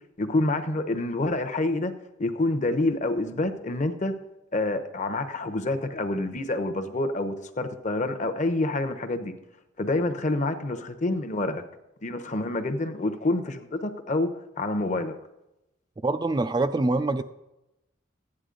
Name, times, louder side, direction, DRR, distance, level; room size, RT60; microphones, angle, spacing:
voice 1, 0.2-1.9 2.2-4.2 4.5-9.3 9.8-11.6 12.0-15.2, left 2 dB, 35° left, 9 dB, 0.8 m, -27 dB
voice 2, 16.0-17.2, right 2 dB, 20° right, 9 dB, 0.3 m, -24 dB
15.0 x 9.8 x 3.8 m, 0.94 s
head